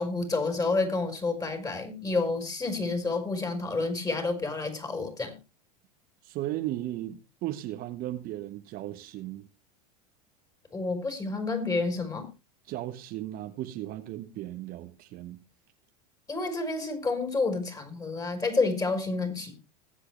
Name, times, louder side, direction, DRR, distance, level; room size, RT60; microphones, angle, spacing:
voice 1, 0.0-5.3 10.7-12.3 16.3-19.6, left 3 dB, 20° left, 4.5 m, -29 dB
voice 2, 6.2-9.5 12.7-15.4, right 14 dB, 45° right, 1.4 m, -36 dB
20.5 x 8.1 x 3.3 m
hypercardioid pair, 90°, 20 cm